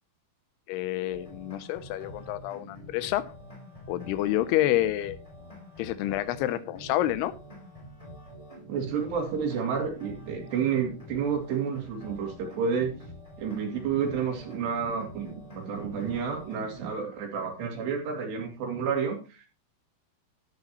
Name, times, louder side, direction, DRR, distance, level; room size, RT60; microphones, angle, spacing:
voice 1, 0.7-3.3 3.9-5.2 5.8-7.3, left 14 dB, 80° left, 2.7 m, -28 dB
sound 1, 1.1-16.9, equal, 10° left, 3.5 m, -46 dB
voice 2, 8.7-13.0 13.4-19.5, right 6 dB, 80° right, 4.8 m, -30 dB
13.5 x 10.0 x 3.1 m
omnidirectional pair, 4.8 m